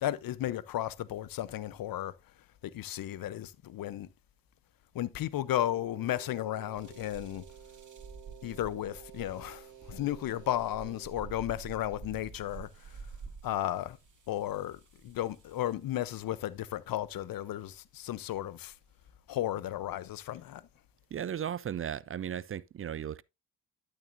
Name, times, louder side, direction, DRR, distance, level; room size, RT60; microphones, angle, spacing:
voice 1, 0.0-2.1 2.6-4.1 4.9-7.4 8.4-13.0 13.4-14.0 14.3-18.7 19.3-20.6, left 13 dB, 65° left, 0.8 m, -34 dB
Wind instrument woodwind instrument, 5.5-11.2, right 10 dB, 75° right, 1.2 m, -53 dB
sound 1, 6.8-15.9 16.7-17.1 17.7-17.8 18.3-19.1, right 5 dB, 55° right, 2.5 m, -49 dB
voice 2, 21.1-23.2, right 9 dB, 35° right, 0.4 m, -36 dB
12.0 x 6.5 x 2.5 m
supercardioid pair, 55°, 37 cm